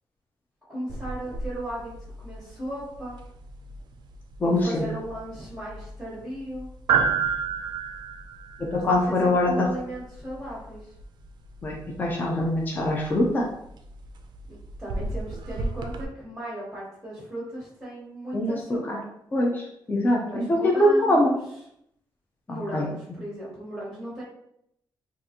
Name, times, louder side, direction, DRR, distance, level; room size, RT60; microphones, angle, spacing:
voice 1, 0.7-3.2 4.4-6.7 8.7-10.8 14.5-19.0 20.2-21.4 22.5-24.2, right 1 dB, ahead, -8 dB, 1.0 m, -36 dB
sound 1, 0.9-16.0, right 5 dB, 60° right, 0.4 m, -33 dB
voice 2, 4.4-4.9 8.6-9.7 11.6-13.5 18.3-18.6 18.9-19.0 19.3-21.4 22.5-22.9, left 1 dB, 20° left, -1 dB, 0.5 m, -23 dB
3.7 x 2.5 x 2.8 m, 0.74 s
wide cardioid pair, 175°, 9 cm